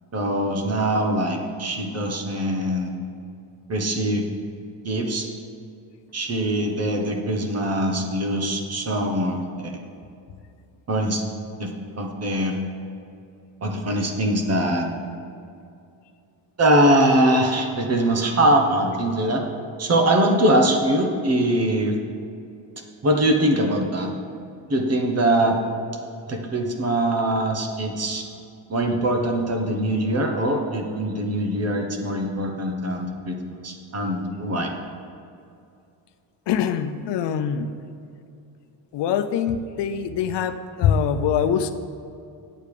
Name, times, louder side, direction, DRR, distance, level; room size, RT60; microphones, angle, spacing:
voice 1, 0.1-2.9 3.7-4.2 4.8-5.3 6.1-9.8 10.9-11.2 11.6-11.7 12.0-12.6 13.6-14.9 16.6-19.4 19.8-22.0 23.0-24.1 24.7-25.6 26.3-28.2 28.7-33.3 33.6-34.7, right 1 dB, 35° right, 3 dB, 1.2 m, -22 dB
voice 2, 36.5-37.7 38.9-41.7, left 8 dB, 70° left, 8 dB, 0.7 m, -23 dB
8.8 x 7.8 x 5.0 m, 2.5 s
cardioid pair, 135°, 44 cm